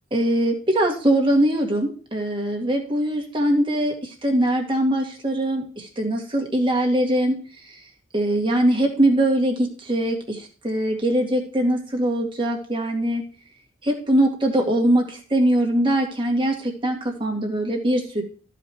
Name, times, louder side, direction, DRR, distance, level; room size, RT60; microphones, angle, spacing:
voice 1, 0.1-7.4 7.7-7.8 8.1-13.2 13.8-18.2, right 1 dB, 25° right, 1 dB, 2.1 m, -22 dB
13.5 x 5.1 x 4.6 m, 0.40 s
head